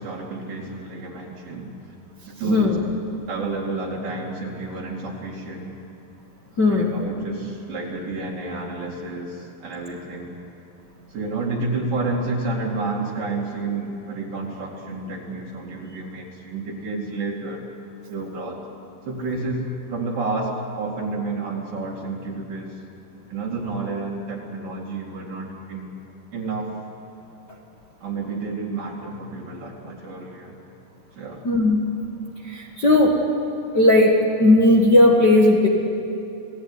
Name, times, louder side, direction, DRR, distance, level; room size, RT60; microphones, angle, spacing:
voice 1, 0.0-1.7 2.4-2.7 3.3-5.7 6.7-10.4 11.1-17.7 18.1-18.6 19.1-22.8 23.3-26.0 26.3-26.8 28.0-30.6 31.1-31.5, right 3 dB, 55° right, -3 dB, 3.7 m, -30 dB
voice 2, 2.5-2.8 6.6-6.9 31.4-31.8 32.4-33.2 33.7-35.7, left 1 dB, 50° left, -2 dB, 1.2 m, -16 dB
30.0 x 19.0 x 9.7 m, 2.8 s
omnidirectional pair, 4.9 m